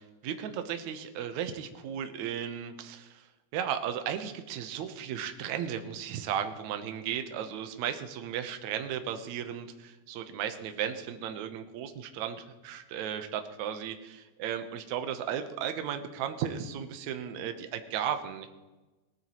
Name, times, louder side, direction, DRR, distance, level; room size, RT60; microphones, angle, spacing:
voice 1, 0.0-3.2 3.5-18.5, right 9 dB, 70° right, 7 dB, 2.2 m, -35 dB
19.0 x 13.5 x 3.1 m, 1.1 s
omnidirectional pair, 3.7 m